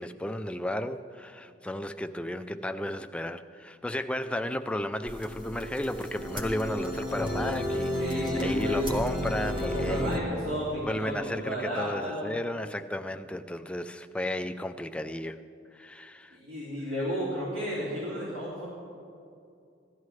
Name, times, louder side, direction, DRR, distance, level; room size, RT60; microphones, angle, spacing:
voice 1, 0.0-10.2 10.8-15.4 15.7-16.4, left 1 dB, 5° left, 8 dB, 0.3 m, -33 dB
sound 1, 5.1-10.2, left 1 dB, 25° right, 1.3 m, -32 dB
voice 2, 8.0-8.9 9.6-12.4 16.3-18.7, equal, 75° right, -8 dB, 2.6 m, -33 dB
17.0 x 13.0 x 3.2 m, 2.5 s
head